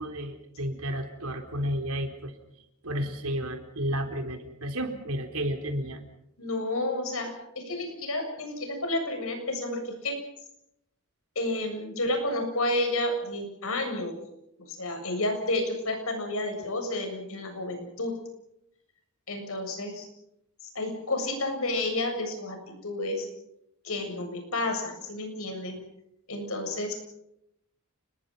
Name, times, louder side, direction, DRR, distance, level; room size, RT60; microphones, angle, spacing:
voice 1, 0.0-2.3 2.8-6.0, equal, 75° right, 5 dB, 3.9 m, -32 dB
voice 2, 6.4-10.2 11.4-14.2 14.7-18.1 19.3-20.1 20.7-23.3 23.8-25.8 26.3-27.0, left 2 dB, 70° left, 5 dB, 7.4 m, -31 dB
29.5 x 21.5 x 5.7 m, 0.78 s
head